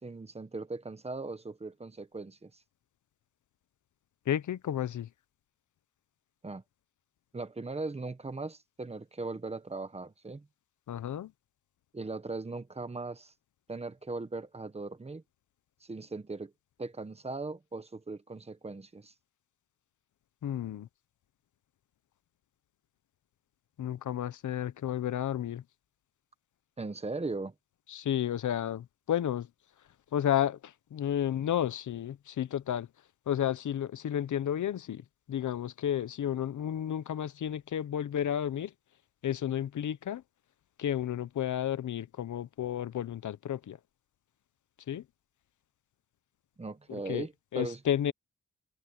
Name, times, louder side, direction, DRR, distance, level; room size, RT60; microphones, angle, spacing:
voice 1, 0.0-2.5 6.4-6.6 7.3-10.5 11.9-13.3 13.7-15.2 15.8-16.5 16.8-19.1 26.8-27.5 46.6-47.8, right 3 dB, 20° right, 1.2 m, -39 dB
voice 2, 4.3-5.1 10.9-11.3 20.4-20.9 23.8-25.6 27.9-29.5 30.1-32.9 33.3-38.7 39.2-40.2 40.8-43.8 44.9-45.0 46.9-47.3 47.5-48.1, left 10 dB, 80° left, 0.8 m, -32 dB
open air
wide cardioid pair, 175°, 30 cm